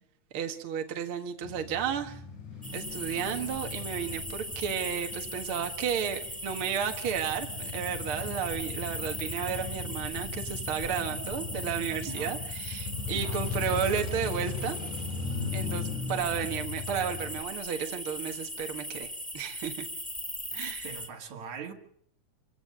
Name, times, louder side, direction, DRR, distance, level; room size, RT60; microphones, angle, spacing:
voice 1, 0.3-2.2 2.7-14.8 15.5-19.9 20.5-20.9, right 8 dB, 50° right, 2.2 m, -33 dB
Male speech man speaking / Motorcycle / Idling, 1.4-17.4, left 4 dB, 90° left, 4.8 m, -38 dB
sound 1, 2.6-21.1, equal, 5° left, 1.8 m, -39 dB
voice 2, 12.1-12.5 13.1-13.5 20.8-21.7, right 6 dB, 70° right, 3.5 m, -41 dB
27.0 x 16.5 x 6.6 m
omnidirectional pair, 3.4 m